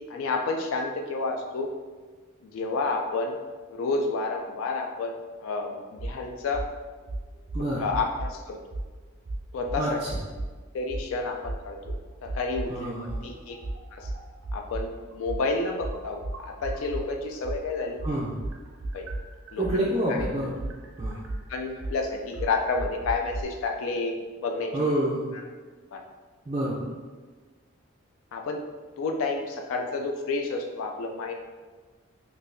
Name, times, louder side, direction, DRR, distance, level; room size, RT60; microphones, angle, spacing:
voice 1, 0.1-1.7 2.4-3.4 3.7-5.1 5.4-6.6 7.8-8.6 9.5-10.0 10.7-13.6 13.9-14.1 14.5-18.0 18.9-19.1 19.5-19.6 20.1-20.2 21.5-24.8 25.9-26.0 28.3-28.6 29.0-31.3, left 3 dB, 70° left, 3 dB, 0.3 m, -30 dB
sound 1, 6.0-6.2 6.5-6.7 7.1-8.3 8.7-8.9 9.3-10.5 10.9-11.1 11.4-12.7 13.1-17.1 17.4-23.4, right 2 dB, 75° right, 0.5 m, -34 dB
voice 2, 7.5-7.8 9.8-10.2 12.7-13.3 18.0-18.3 19.6-20.6 21.0-21.2 24.7-25.3 26.5-26.9, right 1 dB, 25° right, -6 dB, 0.3 m, -28 dB
3.8 x 2.7 x 2.6 m, 1.4 s
head